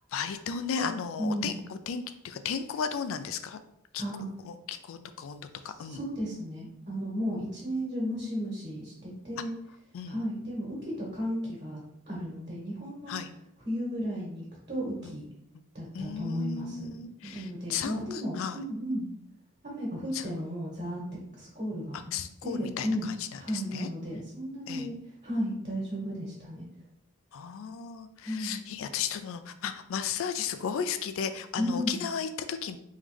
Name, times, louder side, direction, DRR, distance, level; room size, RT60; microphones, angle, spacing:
voice 1, 0.1-3.6 3.9-4.0 4.5-6.0 9.9-10.2 13.1-13.3 15.0-15.1 15.9-18.6 20.1-20.3 21.9-23.9 24.7-24.9 27.3-32.8, left 7 dB, 65° left, 10 dB, 0.3 m, -35 dB
voice 2, 1.2-1.5 3.9-4.3 5.8-9.5 10.0-11.8 12.1-13.2 13.6-15.2 15.7-16.9 17.2-19.1 19.6-21.0 21.3-22.0 22.4-25.0 25.2-26.6 28.2-28.6 31.6-32.0, equal, 45° right, -6 dB, 1.4 m, -34 dB
3.7 x 3.1 x 3.4 m, 0.78 s
head